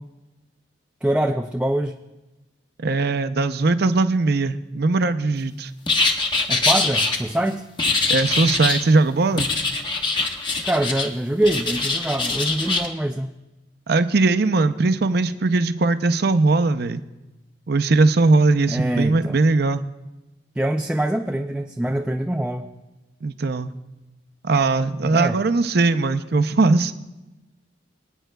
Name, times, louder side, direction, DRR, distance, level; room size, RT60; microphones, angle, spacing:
voice 1, 1.0-1.9 6.5-7.6 10.6-13.3 18.7-19.4 20.6-22.7 25.1-25.4, right 1 dB, 5° right, 4 dB, 0.3 m, -24 dB
voice 2, 2.8-5.7 8.1-9.5 13.9-17.0 17.7-19.8 23.2-23.7 24.4-26.9, right 3 dB, 55° right, 11 dB, 0.6 m, -19 dB
sound 1, 5.9-7.2 7.8-8.9 9.4-11.1 11.4-12.9, left 3 dB, 25° left, 1.0 m, -23 dB
25.0 x 9.1 x 2.3 m, 1.0 s
head